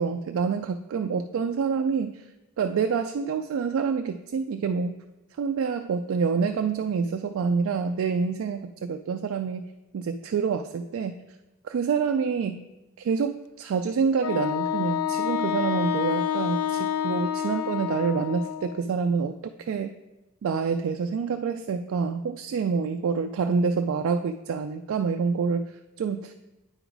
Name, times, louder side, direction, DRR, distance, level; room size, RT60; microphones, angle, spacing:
voice 1, 0.0-2.2 2.6-5.0 5.4-9.7 9.9-11.2 11.6-12.6 13.0-19.9 20.4-26.3, right 5 dB, 65° right, 6 dB, 0.3 m, -27 dB
Wind instrument woodwind instrument, 14.2-18.8, left 9 dB, 80° left, 0.3 m, -28 dB
8.8 x 3.9 x 4.6 m, 0.99 s
head